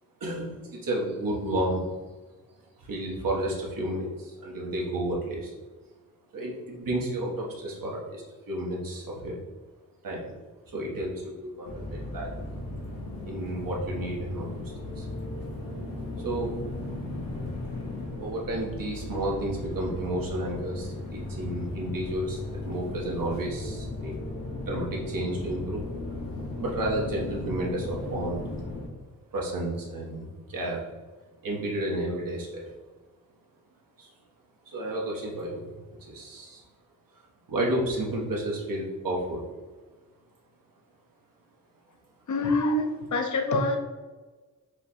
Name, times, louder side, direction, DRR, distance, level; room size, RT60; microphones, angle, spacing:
voice 1, 0.2-1.9 2.8-5.5 6.3-9.4 10.0-10.3 10.7-12.4 13.2-14.5 15.0-15.1 16.2-16.5 18.2-24.2 24.6-25.9 26.5-28.4 29.3-30.8 31.4-32.7 34.0-34.1 34.7-35.7 36.0-36.6 37.5-39.4, right 1 dB, 75° right, 1.2 m, -31 dB
sound 1, 11.6-28.9, left 2 dB, 85° left, 1.2 m, -36 dB
voice 2, 42.3-43.8, left 2 dB, 60° left, 0.7 m, -25 dB
4.6 x 2.3 x 4.1 m
cardioid pair, 65°, 34 cm